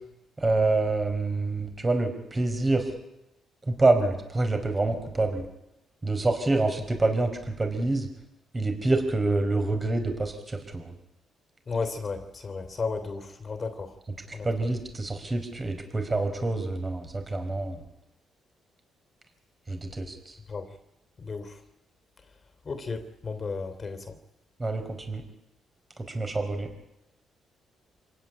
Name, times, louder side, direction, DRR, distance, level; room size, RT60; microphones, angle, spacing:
voice 1, 0.4-2.9 3.7-5.4 6.0-8.1 8.5-10.8 14.3-17.8 19.7-20.3 24.6-25.2 26.1-26.7, right 2 dB, 25° right, 4.6 m, -26 dB
voice 2, 11.7-13.9 14.3-14.7 20.5-20.7 21.2-21.6 22.6-24.2, left 4 dB, 40° left, 3.2 m, -34 dB
26.5 x 16.5 x 10.0 m
cardioid pair, 90°, 0 cm